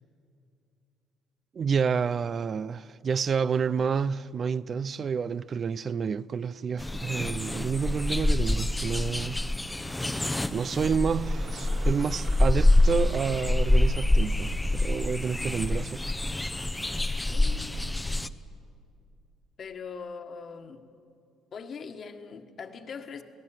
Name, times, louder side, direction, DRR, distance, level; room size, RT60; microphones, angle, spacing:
voice 1, 1.5-9.4 10.5-16.0, right 6 dB, 40° right, 0.5 m, -29 dB
sound 1, 6.8-18.3, left 2 dB, 10° left, 0.9 m, -26 dB
Engine, 10.4-16.8, right 4 dB, 75° right, 5.5 m, -50 dB
voice 2, 17.3-17.8 19.6-20.8 21.5-23.2, left 5 dB, 45° left, 1.7 m, -41 dB
27.5 x 18.0 x 9.2 m
cardioid pair, 95°, 0 cm